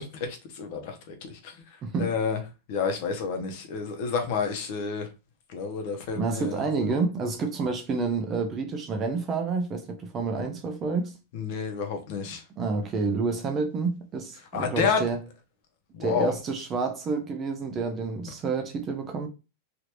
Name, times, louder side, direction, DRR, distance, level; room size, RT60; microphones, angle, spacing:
voice 1, 0.0-1.5 2.0-2.4 2.7-5.1 5.5-6.7 11.3-12.4 14.5-15.0 15.9-16.3, left 6 dB, 45° left, 0.8 m, -29 dB
voice 2, 6.2-11.1 12.6-15.2 16.0-19.3, right 4 dB, 20° right, 0.4 m, -29 dB
3.3 x 2.4 x 2.9 m
supercardioid pair, 170°, 0 cm